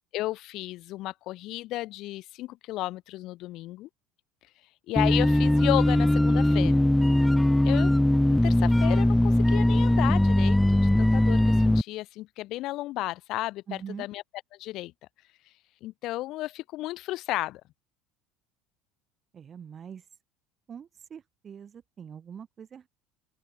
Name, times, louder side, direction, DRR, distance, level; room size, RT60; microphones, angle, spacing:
voice 1, 0.1-3.9 4.9-6.8 7.6-7.9 8.3-14.2 14.6-14.9 15.8-17.6, left 17 dB, 45° left, 3.7 m, -33 dB
sound 1, 5.0-11.8, left 1 dB, 5° left, 0.3 m, -21 dB
voice 2, 13.7-14.1 19.3-20.0 20.7-22.9, right 7 dB, 25° right, 2.2 m, -43 dB
open air
cardioid pair, 160°, 0 cm